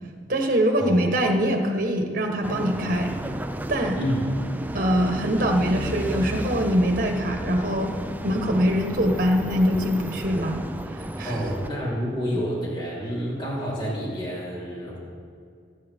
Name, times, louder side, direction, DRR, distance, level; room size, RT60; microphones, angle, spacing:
voice 1, 0.3-3.1 3.7-4.0 4.7-7.9 8.2-10.6 11.2-11.4, equal, 50° right, 3 dB, 1.4 m, -23 dB
sound 1, 2.4-11.7, right 1 dB, 10° right, 0.4 m, -32 dB
voice 2, 4.0-4.3 11.2-15.0, equal, 25° left, -6 dB, 4.0 m, -29 dB
22.0 x 9.5 x 3.7 m, 2.3 s
head